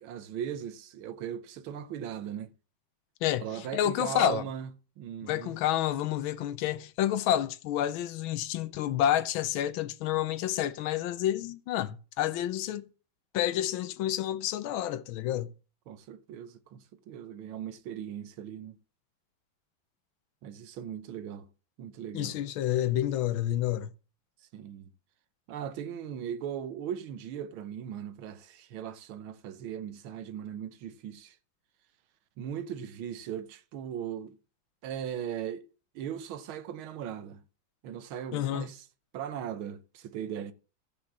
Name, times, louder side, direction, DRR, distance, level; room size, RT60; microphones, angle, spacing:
voice 1, 0.0-2.5 3.4-5.6 15.9-18.8 20.4-21.5 21.8-22.4 24.5-24.9 25.5-31.4 32.4-34.4 34.8-35.7 35.9-37.4 37.8-38.9 39.1-40.5, right 9 dB, 90° right, 1.6 m, -38 dB
voice 2, 3.2-4.4 5.2-12.8 13.3-15.5 22.1-23.9 38.3-38.7, left 12 dB, 80° left, 1.5 m, -29 dB
13.5 x 5.1 x 7.2 m
omnidirectional pair, 2.2 m